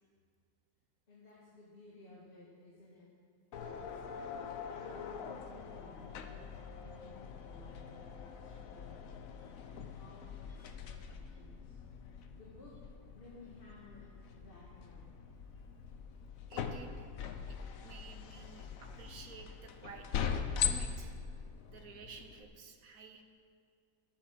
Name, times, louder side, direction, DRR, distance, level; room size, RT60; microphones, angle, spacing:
voice 1, 1.1-3.1 3.8-9.0 9.7-11.8 12.3-12.8 13.1-15.2, left 2 dB, 30° left, -6 dB, 1.9 m, -57 dB
sound 1, 3.5-22.4, left 7 dB, 60° left, 1.0 m, -42 dB
voice 2, 16.5-17.1 17.5-20.1 20.5-21.1 21.7-23.2, right 5 dB, 55° right, 5 dB, 1.3 m, -52 dB
12.5 x 8.9 x 6.2 m, 2.2 s
omnidirectional pair, 1.9 m